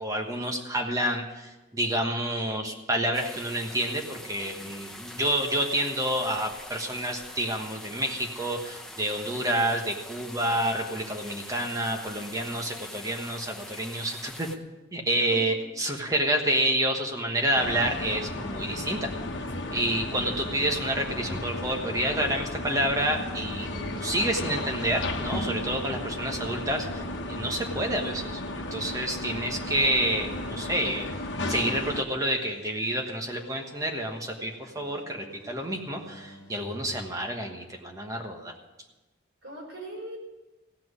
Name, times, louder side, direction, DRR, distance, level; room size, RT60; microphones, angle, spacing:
voice 1, 0.0-14.5 14.9-19.1 19.7-26.9 27.3-28.4 28.7-31.1 31.5-38.5, right 1 dB, 15° right, 2 dB, 1.3 m, -29 dB
sound 1, 3.1-14.6, left 1 dB, 5° left, 0.7 m, -43 dB
sound 2, 17.6-32.0, left 1 dB, 65° left, 1.2 m, -34 dB
voice 2, 19.5-19.9 39.4-40.2, right 1 dB, 70° right, -1 dB, 4.4 m, -41 dB
sound 3, 29.7-37.1, left 1 dB, 20° left, 2.9 m, -51 dB
16.0 x 6.0 x 9.6 m, 1.1 s
head